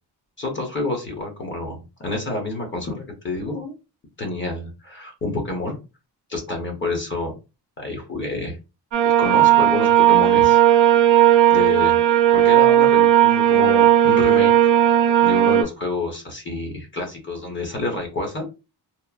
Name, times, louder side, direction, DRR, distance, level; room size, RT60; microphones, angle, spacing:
voice 1, 0.4-3.7 4.2-5.8 6.3-7.4 7.8-8.6 9.2-10.6 11.5-12.0 12.3-14.5 15.2-18.5, left 2 dB, 25° left, 1 dB, 0.8 m, -28 dB
sound 1, 8.9-15.6, right 11 dB, 75° right, 0.6 m, -15 dB
2.9 x 2.0 x 2.3 m, 0.28 s
wide cardioid pair, 175°, 42 cm